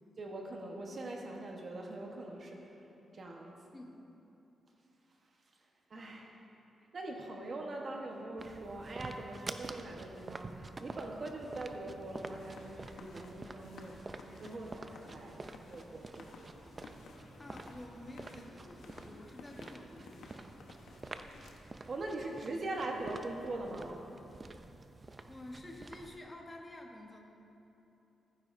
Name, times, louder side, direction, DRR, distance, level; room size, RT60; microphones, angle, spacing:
voice 1, 0.2-2.7 3.1-3.5 5.9-6.3 6.9-14.0 14.3-15.4 15.7-16.6 21.9-24.0, right 2 dB, 45° right, 0 dB, 1.1 m, -42 dB
sound 1, 8.4-26.2, right 2 dB, 25° right, 0.4 m, -49 dB
sound 2, 12.1-21.6, left 3 dB, 85° left, 1.0 m, -55 dB
voice 2, 17.4-20.4 25.3-27.2, left 1 dB, 20° left, 1 dB, 1.1 m, -49 dB
15.5 x 9.7 x 2.6 m, 3.0 s
cardioid pair, 125°, 0 cm